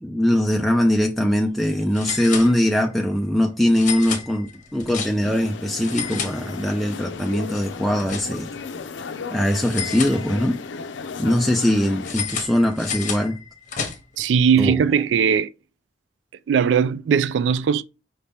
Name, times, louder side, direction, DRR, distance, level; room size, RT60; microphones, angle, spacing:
voice 1, 0.0-8.5 9.3-10.6 11.2-13.4 14.6-14.8, left 1 dB, ahead, 0.3 m, -21 dB
sound 1, 0.9-1.0 1.2-1.3 1.9-3.0 3.7-5.4 5.7-6.9 7.3-8.6 9.6-10.7 12.0-14.3, left 7 dB, 45° left, 0.9 m, -32 dB
sound 2, 5.2-12.1, left 5 dB, 85° left, 0.5 m, -35 dB
voice 2, 14.2-15.5 16.5-17.8, right 7 dB, 80° right, 0.3 m, -19 dB
5.2 x 2.8 x 3.3 m
head